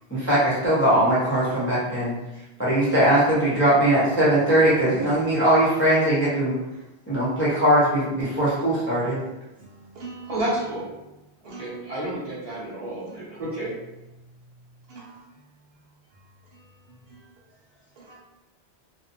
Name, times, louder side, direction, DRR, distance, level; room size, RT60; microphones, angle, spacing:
voice 1, 0.1-2.1 2.6-6.5 7.1-9.2, right 1 dB, 15° left, -9 dB, 0.6 m, -20 dB
voice 2, 9.6-10.3 11.4-11.7 13.1-13.3 14.9-15.2 17.1-17.2 18.0-18.1, right 2 dB, 70° right, -4 dB, 0.8 m, -41 dB
voice 3, 10.3-10.9 11.4-13.7, right 1 dB, 40° right, -7 dB, 0.8 m, -30 dB
2.5 x 2.1 x 2.6 m, 1.0 s
omnidirectional pair, 1.1 m